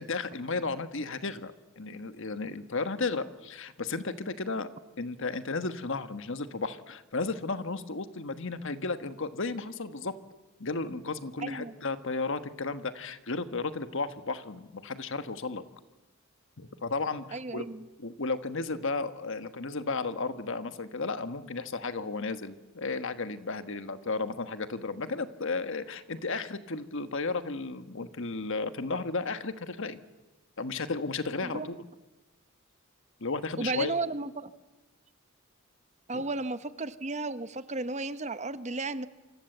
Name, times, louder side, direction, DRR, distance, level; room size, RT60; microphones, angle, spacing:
voice 1, 0.0-4.7 5.0-10.2 10.6-15.6 16.6-17.7 18.0-30.0 30.6-31.9 33.2-34.0 36.1-36.2, left 3 dB, 60° left, 11 dB, 1.4 m, -34 dB
voice 2, 11.4-11.7 17.3-17.9 31.4-31.7 33.6-34.5 36.1-39.1, right 3 dB, 30° right, 13 dB, 1.0 m, -34 dB
28.5 x 24.5 x 8.0 m, 1.1 s
head